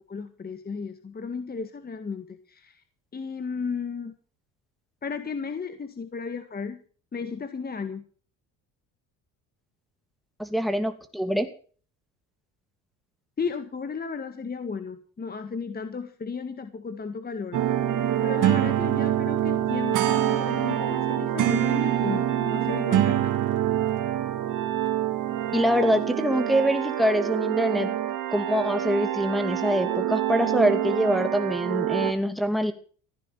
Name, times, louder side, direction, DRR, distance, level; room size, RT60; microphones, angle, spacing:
voice 1, 0.0-2.8 3.1-4.1 5.0-6.8 7.1-8.1 13.4-17.6 18.2-23.3, left 5 dB, 25° left, 9 dB, 1.7 m, -34 dB
voice 2, 10.4-11.5 25.5-27.9 28.3-32.7, equal, ahead, 7 dB, 2.4 m, -24 dB
sound 1, 17.5-32.1, right 11 dB, 60° right, 2.6 m, -26 dB
15.5 x 9.9 x 6.8 m, 0.42 s
cardioid pair, 100°, 35 cm